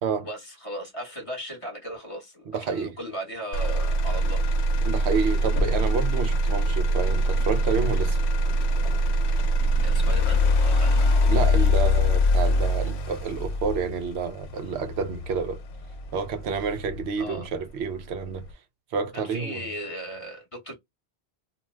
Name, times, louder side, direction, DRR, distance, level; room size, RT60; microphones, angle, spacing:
voice 1, 0.2-4.7 9.8-11.2 17.2-17.5 19.1-20.7, right 1 dB, 30° left, 1.2 m, -37 dB
voice 2, 2.5-2.9 4.8-8.2 11.2-15.6 16.1-18.5 18.9-19.7, right 5 dB, 85° right, 0.9 m, -29 dB
Motor vehicle (road), 3.5-17.5 18.0-18.5, left 1 dB, 90° left, 0.9 m, -23 dB
2.5 x 2.2 x 3.2 m
omnidirectional pair, 1.1 m